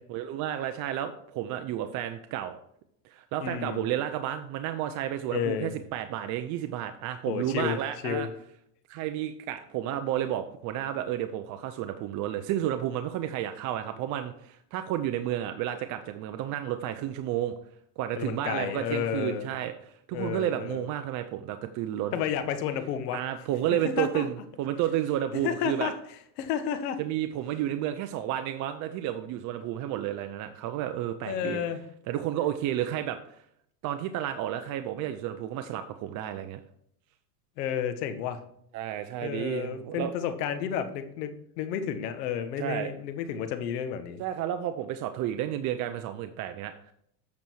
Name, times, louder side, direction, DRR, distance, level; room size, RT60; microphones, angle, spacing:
voice 1, 0.1-2.6 3.0-8.3 8.9-17.5 18.0-22.2 23.1-25.9 27.0-31.6 32.1-33.4 33.8-36.6 38.7-40.1 42.6-42.9 44.2-46.9, right 11 dB, 40° right, 8 dB, 0.6 m, -31 dB
voice 2, 3.4-3.8 5.3-5.8 7.3-7.8 8.0-8.3 18.2-19.5 20.1-20.9 22.1-23.2 23.7-24.2 25.4-25.9 26.4-27.0 31.2-31.8 37.6-38.4 39.2-44.2, left 8 dB, 75° left, 9 dB, 1.5 m, -31 dB
8.5 x 6.4 x 4.6 m, 0.70 s
supercardioid pair, 130°, 48 cm